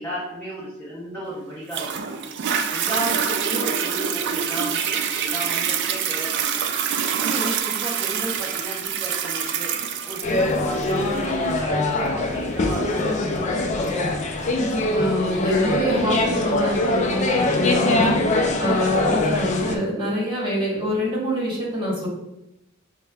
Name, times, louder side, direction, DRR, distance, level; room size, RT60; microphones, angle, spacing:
voice 1, 0.0-2.3 2.7-6.6 7.2-9.7 10.0-13.9, right 1 dB, 10° left, -8 dB, 0.7 m, -33 dB
Toilet flush, 1.7-14.7 15.3-15.4, right 8 dB, 60° right, 0.3 m, -26 dB
sound 1, 10.2-19.8, left 2 dB, 35° left, 0.4 m, -23 dB
voice 2, 14.9-18.2 18.6-22.1, equal, 25° right, -5 dB, 1.2 m, -25 dB
6.0 x 2.1 x 2.3 m, 0.88 s
head